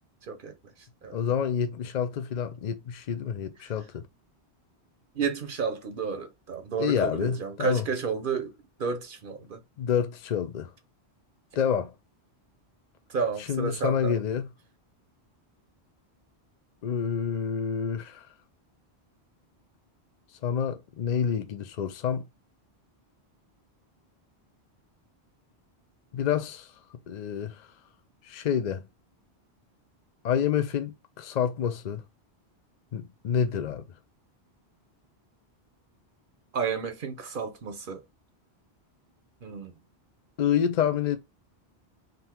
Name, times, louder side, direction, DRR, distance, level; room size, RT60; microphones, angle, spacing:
voice 1, 1.1-4.0 6.8-7.9 9.8-10.7 11.6-11.9 13.4-14.5 16.8-18.3 20.4-22.2 26.1-26.7 27.1-27.7 28.2-28.9 30.2-32.0 32.9-33.9 40.4-41.2, left 8 dB, 55° left, 0.5 m, -28 dB
voice 2, 5.2-8.5 8.8-9.6 13.1-14.1 36.5-38.0 39.4-39.7, right 6 dB, 55° right, 0.8 m, -31 dB
3.8 x 2.7 x 4.3 m
omnidirectional pair, 1.1 m